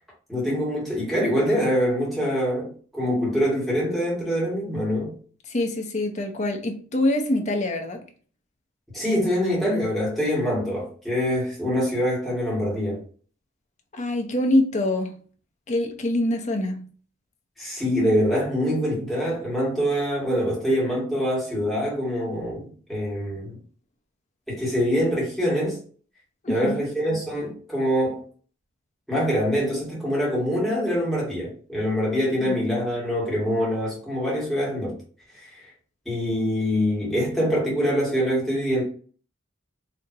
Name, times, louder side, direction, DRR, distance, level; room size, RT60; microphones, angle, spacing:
voice 1, 0.3-5.1 8.9-13.0 17.6-23.6 24.5-25.8 26.5-28.2 29.1-35.0 35.3-35.6 36.0-38.8, equal, ahead, 1.6 m, -24 dB
voice 2, 5.5-8.0 13.9-15.1 15.7-16.8 26.4-26.8 32.4-32.6, left 1 dB, 35° left, 0.7 m, -24 dB
4.4 x 2.8 x 2.6 m
head